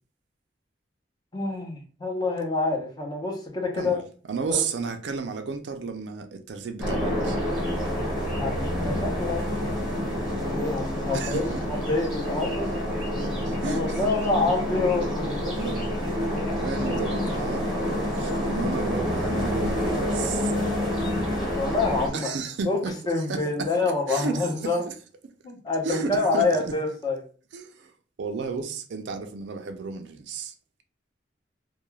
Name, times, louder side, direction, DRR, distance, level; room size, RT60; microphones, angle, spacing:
voice 1, 1.3-4.0 4.5-4.6 8.4-9.4 10.4-11.4 11.7-12.7 13.7-15.6 21.5-22.3 22.7-22.8 23.1-24.8 25.4-27.2, left 3 dB, 25° left, 0.7 m, -27 dB
voice 2, 3.7-7.4 11.1-11.6 13.1-14.0 15.6-15.9 16.6-17.7 18.1-20.5 22.1-22.9 23.3-23.7 24.1-24.9 25.8-26.7 27.5-27.9 28.2-30.5, right 4 dB, 75° right, 0.4 m, -33 dB
sound 1, 6.8-22.1, left 1 dB, 5° right, 1.2 m, -28 dB
2.3 x 2.2 x 3.1 m
head